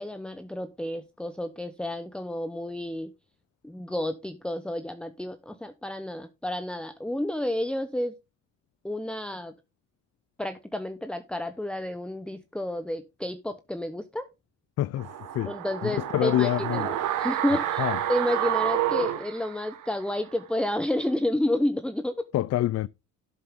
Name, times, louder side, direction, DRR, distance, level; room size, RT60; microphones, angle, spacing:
voice 1, 0.0-3.1 3.6-8.1 8.8-9.5 10.4-14.3 15.4-22.3, left 1 dB, 5° left, 0.9 m, -30 dB
voice 2, 14.8-15.5 15.8-16.9 17.8-18.0 22.3-22.9, left 14 dB, 55° left, 0.4 m, -26 dB
sound 1, 15.0-20.1 20.4-20.5, right 11 dB, 85° right, 1.6 m, -29 dB
12.0 x 7.6 x 3.7 m
cardioid pair, 90°, 30 cm